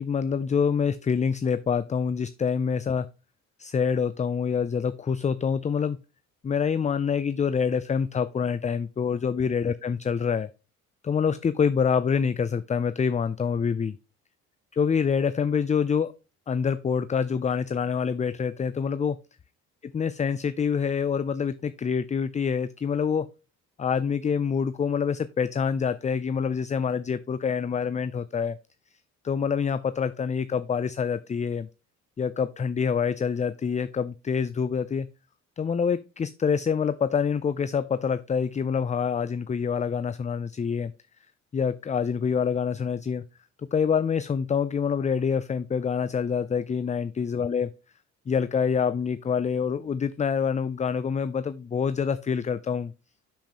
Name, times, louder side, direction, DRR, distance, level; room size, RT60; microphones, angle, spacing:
voice 1, 0.0-3.1 3.6-6.0 6.4-10.5 11.0-14.0 14.7-16.1 16.5-19.2 19.8-23.3 23.8-28.6 29.2-31.7 32.2-35.1 35.6-40.9 41.5-43.2 43.7-47.7 48.3-52.9, left 6 dB, 25° left, 14 dB, 0.5 m, -26 dB
7.4 x 7.2 x 3.0 m, 0.31 s
supercardioid pair, 75°, 32 cm